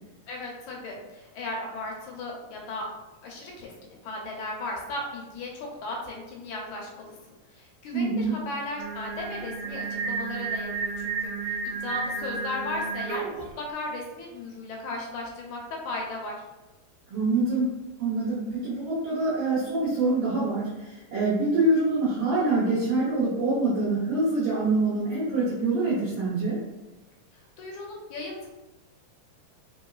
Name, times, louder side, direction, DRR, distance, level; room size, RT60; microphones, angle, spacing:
voice 1, 0.3-2.9 3.2-7.2 7.5-11.3 11.8-16.4 27.6-28.5, left 2 dB, 75° left, -1 dB, 2.0 m, -36 dB
voice 2, 7.9-8.4 17.1-17.7 18.0-26.6, right 2 dB, 65° right, -8 dB, 1.6 m, -25 dB
Singing, 8.8-13.5, right 4 dB, 85° right, 2.1 m, -32 dB
4.6 x 3.4 x 2.3 m, 1.1 s
omnidirectional pair, 3.7 m